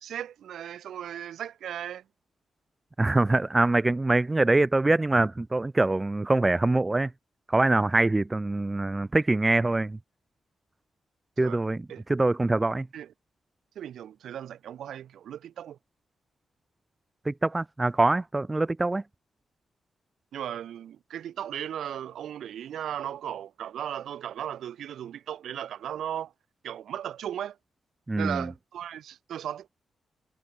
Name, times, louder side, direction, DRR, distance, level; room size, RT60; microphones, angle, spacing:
voice 1, 0.0-2.0 3.0-3.2 11.4-11.6 11.9-12.0 12.9-13.1 13.8-15.8 20.3-26.3 26.6-27.6 28.2-29.7, right 10 dB, 90° right, 0.7 m, -36 dB
voice 2, 3.0-7.1 7.5-10.0 11.4-12.9 17.3-19.0 28.1-28.5, right 2 dB, 20° right, 0.3 m, -24 dB
cardioid pair, 85°, 0 cm